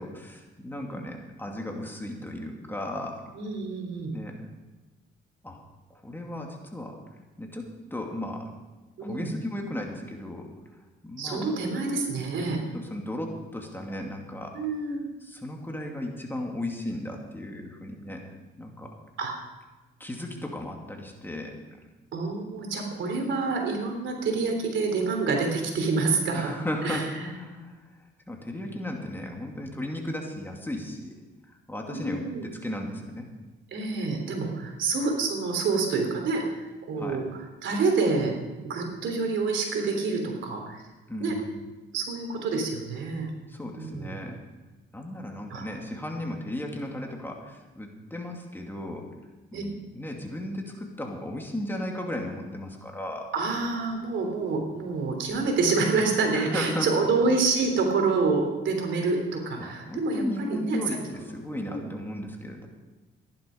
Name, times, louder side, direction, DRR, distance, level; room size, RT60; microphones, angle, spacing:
voice 1, 0.0-3.3 4.1-4.4 5.4-5.6 6.0-7.0 7.4-8.5 9.0-10.5 11.0-11.5 12.7-14.5 15.2-18.2 18.6-18.9 20.0-21.5 26.3-27.8 28.3-31.2 31.7-33.3 37.0-37.2 41.1-41.5 43.5-44.3 44.9-49.1 49.5-53.3 56.3-56.9 59.6-62.7, left 1 dB, 10° left, 1 dB, 2.4 m, -35 dB
voice 2, 3.3-4.1 9.0-9.3 11.2-12.6 14.5-15.1 19.2-19.3 22.1-26.5 26.8-27.1 31.9-32.4 33.7-38.3 38.6-40.8 41.2-41.3 41.9-43.3 43.7-44.2 45.5-45.6 49.5-49.6 53.3-60.8 61.7-61.8, right 4 dB, 70° right, 2 dB, 3.4 m, -27 dB
14.5 x 11.5 x 5.2 m, 1.2 s
cardioid pair, 90°, 20 cm